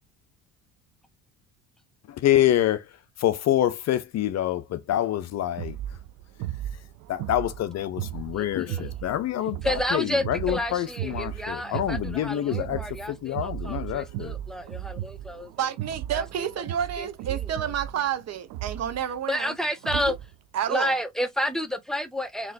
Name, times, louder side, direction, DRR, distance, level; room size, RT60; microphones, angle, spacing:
voice 1, 2.1-2.8 3.2-5.8 7.1-9.6 9.9-12.8 13.1-14.3, left 12 dB, 45° left, 0.5 m, -26 dB
sound 1, 5.6-20.3, right 12 dB, 60° right, 0.5 m, -36 dB
voice 2, 8.4-8.9 9.6-15.7 16.1-16.7 17.0-17.7 19.3-20.1 20.7-22.5, equal, ahead, 0.8 m, -31 dB
voice 3, 15.6-19.5 20.1-20.2 20.5-20.9, right 9 dB, 45° right, 0.8 m, -30 dB
3.8 x 3.0 x 2.5 m
supercardioid pair, 80°, 37 cm